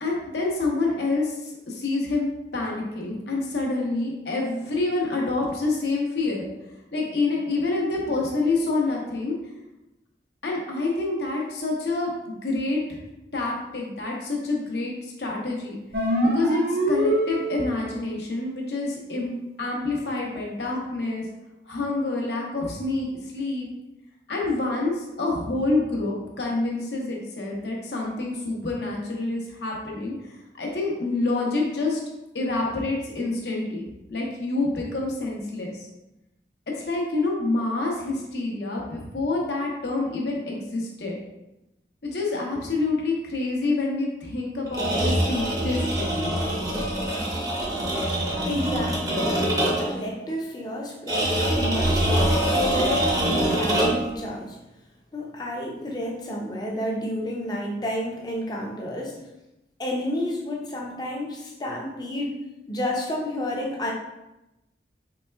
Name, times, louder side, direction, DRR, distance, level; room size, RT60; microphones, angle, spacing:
voice 1, 0.0-1.3 1.7-2.3 2.5-6.5 6.9-9.3 10.4-13.0 13.3-15.8 16.2-21.3 21.7-23.7 24.3-30.1 30.5-32.0 32.3-35.9 36.8-41.2 42.0-46.6, left 2 dB, 70° left, -1 dB, 0.8 m, -27 dB
sound 1, 15.9-17.9, right 1 dB, 65° right, 0.6 m, -24 dB
sound 2, 44.7-50.0 51.1-54.1, right 1 dB, 20° right, 0.6 m, -24 dB
voice 2, 48.4-49.3 49.8-54.6 55.1-59.2 59.8-62.4 62.7-63.9, left 1 dB, 20° left, -1 dB, 0.5 m, -30 dB
4.2 x 3.2 x 2.2 m, 0.95 s
head